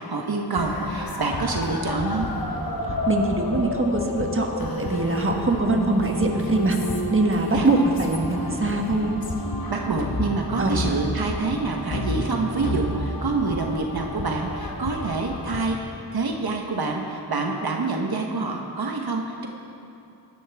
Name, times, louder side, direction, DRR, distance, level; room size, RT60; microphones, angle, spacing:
voice 1, 0.0-2.3 5.7-6.0 7.5-7.7 9.7-15.8 16.1-19.5, right 3 dB, 70° right, 2 dB, 1.1 m, -27 dB
sound 1, 0.6-15.6, left 1 dB, 65° left, 1.4 m, -30 dB
voice 2, 3.1-6.8 7.1-9.1 10.6-10.8, right 2 dB, 35° right, 2 dB, 1.4 m, -23 dB
16.5 x 11.5 x 3.5 m, 2.8 s
wide cardioid pair, 65°, 39 cm